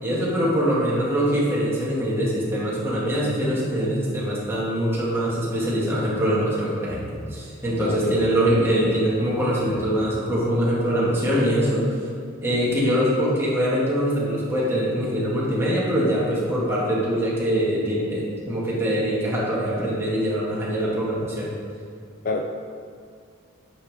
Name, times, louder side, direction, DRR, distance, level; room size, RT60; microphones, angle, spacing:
voice 1, 0.0-11.9 12.4-21.5, equal, 10° right, -8 dB, 2.2 m, -23 dB
voice 2, 7.8-8.3 22.2-22.4, left 3 dB, 40° left, 3 dB, 0.4 m, -27 dB
9.7 x 6.2 x 3.6 m, 2.2 s
head